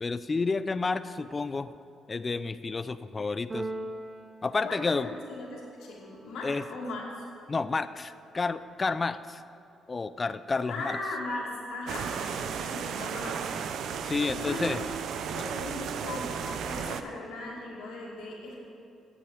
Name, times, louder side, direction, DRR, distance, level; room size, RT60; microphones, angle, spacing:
voice 1, 0.0-1.7 2.1-3.7 4.4-5.1 6.4-6.6 7.5-9.4 9.9-11.0 14.0-14.8, left 4 dB, 30° left, 13 dB, 0.4 m, -30 dB
Keyboard (musical), 3.5-5.6, right 2 dB, 35° right, 0.7 m, -40 dB
voice 2, 4.6-7.2 10.6-13.6 14.0-14.8 15.1-18.6, left 2 dB, 85° left, -4 dB, 2.4 m, -38 dB
sound 1, 11.9-17.0, right 7 dB, 75° right, 0.6 m, -34 dB
8.3 x 7.5 x 8.6 m, 2.7 s
cardioid pair, 90°, 0 cm